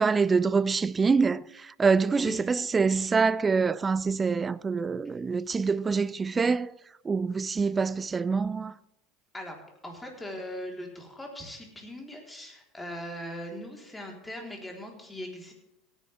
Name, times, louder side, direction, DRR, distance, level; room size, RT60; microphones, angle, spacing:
voice 1, 0.0-6.8 7.0-8.8, right 5 dB, 20° right, 0.4 m, -25 dB
voice 2, 9.3-15.5, left 1 dB, 10° left, 4.0 m, -40 dB
17.5 x 10.5 x 3.6 m
hypercardioid pair, 85°, 0 cm